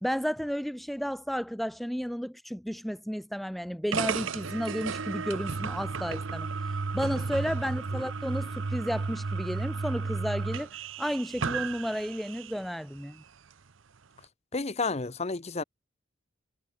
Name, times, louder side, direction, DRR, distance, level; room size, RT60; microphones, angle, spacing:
voice 1, 0.0-6.5 6.9-13.2, equal, ahead, 0.5 m, -32 dB
sound 1, 3.9-12.7, right 4 dB, 70° right, 0.8 m, -33 dB
voice 2, 14.5-15.6, left 3 dB, 30° left, 0.9 m, -31 dB
head